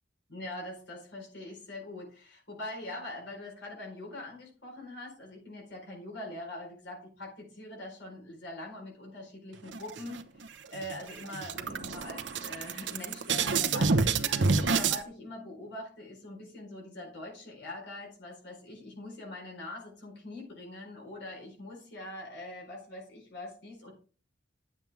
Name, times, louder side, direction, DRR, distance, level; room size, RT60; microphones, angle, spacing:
voice 1, 0.3-23.9, left 1 dB, 65° left, -1 dB, 4.2 m, -43 dB
sound 1, 9.7-10.4 10.8-10.9 11.2-15.0, right 4 dB, 70° right, 0.9 m, -28 dB
11.0 x 7.8 x 3.5 m, 0.37 s
head